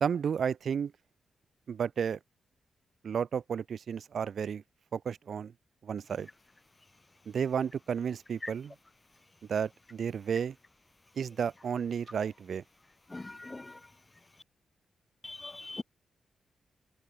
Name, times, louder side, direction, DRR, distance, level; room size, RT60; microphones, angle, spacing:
voice 1, 0.0-0.9 1.7-2.2 3.0-4.6 4.9-5.5 5.8-6.3 7.3-8.7 9.5-10.6 11.2-12.6, right 7 dB, 60° right, 1.0 m, -32 dB
voice 2, 13.1-13.8 15.2-15.8, left 2 dB, 20° left, 0.3 m, -41 dB
cardioid pair, 110°, 0 cm